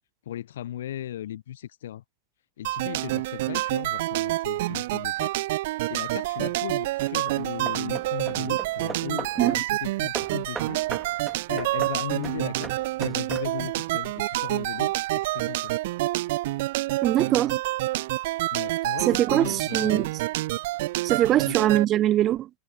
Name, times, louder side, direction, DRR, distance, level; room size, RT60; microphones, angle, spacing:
voice 1, 0.3-2.0 2.6-5.3 5.9-10.8 11.5-12.7 13.0-15.7 18.5-20.1 21.4-21.5, left 11 dB, 60° left, 0.7 m, -37 dB
sound 1, 2.6-21.8, right 18 dB, 50° right, 1.0 m, -28 dB
Hammer / Wood, 5.9-6.4 7.1-9.5 10.1-13.8, right 4 dB, 15° right, 2.1 m, -40 dB
voice 2, 17.0-17.6 19.0-20.1 21.0-22.5, right 13 dB, 30° right, 0.4 m, -22 dB
figure-of-eight pair, 90°, 0 cm